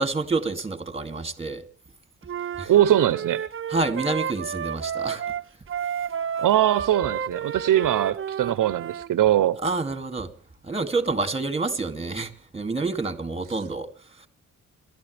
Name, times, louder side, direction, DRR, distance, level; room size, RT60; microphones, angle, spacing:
voice 1, 0.0-1.6 2.6-2.7 3.7-5.2 9.6-10.3 10.6-13.9, right 3 dB, 20° right, 2.5 m, -28 dB
Wind instrument woodwind instrument, 2.3-9.1, right 8 dB, 40° right, 0.8 m, -31 dB
voice 2, 2.7-3.4 6.4-9.6, right 12 dB, 70° right, 0.8 m, -21 dB
28.0 x 12.5 x 3.4 m
cardioid pair, 70°, 33 cm